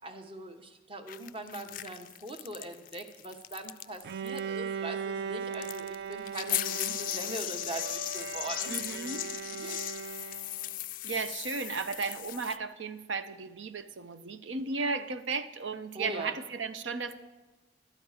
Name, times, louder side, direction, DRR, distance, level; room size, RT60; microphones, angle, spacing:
voice 1, 0.0-9.0 9.6-9.9 15.9-16.3, right 2 dB, 30° right, 6 dB, 0.9 m, -41 dB
sound 1, 1.1-4.0 4.3-4.4 5.5-12.6, left 14 dB, 45° left, 0.3 m, -37 dB
Bowed string instrument, 4.0-10.8, right 6 dB, 60° right, 0.3 m, -38 dB
voice 2, 8.7-9.2 11.0-17.2, right 4 dB, 85° right, 10 dB, 0.7 m, -35 dB
12.0 x 9.7 x 4.9 m, 1.2 s
head